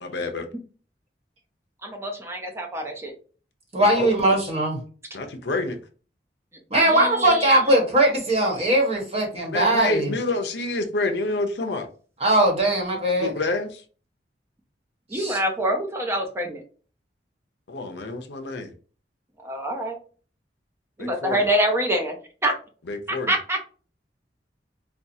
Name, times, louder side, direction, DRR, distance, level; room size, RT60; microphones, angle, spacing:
voice 1, 0.0-0.5 3.9-4.4 5.1-5.8 9.5-11.9 13.2-13.8 17.7-18.7 21.0-21.4 22.9-23.3, left 2 dB, 70° left, 5 dB, 0.6 m, -28 dB
voice 2, 1.8-3.1 6.8-7.6 15.1-16.6 19.4-20.0 21.0-22.2 22.4-22.5 23.1-23.6, right 1 dB, 15° right, 2 dB, 0.7 m, -26 dB
voice 3, 3.7-4.8 6.7-10.1 12.2-13.3 15.1-15.4, right 1 dB, 35° right, 0 dB, 1.3 m, -20 dB
4.4 x 2.3 x 2.7 m, 0.39 s
head